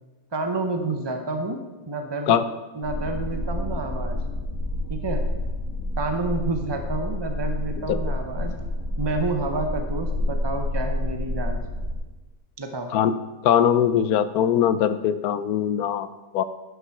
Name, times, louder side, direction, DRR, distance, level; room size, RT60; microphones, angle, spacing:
voice 1, 0.3-2.4 2.7-4.2 4.9-5.3 6.0-8.5 9.0-11.6 12.6-12.9, right 3 dB, 35° right, 5 dB, 0.4 m, -29 dB
sound 1, 2.8-12.0, left 1 dB, 25° left, 3.5 m, -29 dB
voice 2, 13.4-16.1 16.3-16.4, left 9 dB, 70° left, 13 dB, 1.0 m, -21 dB
11.0 x 6.9 x 5.8 m, 1.2 s
omnidirectional pair, 1.8 m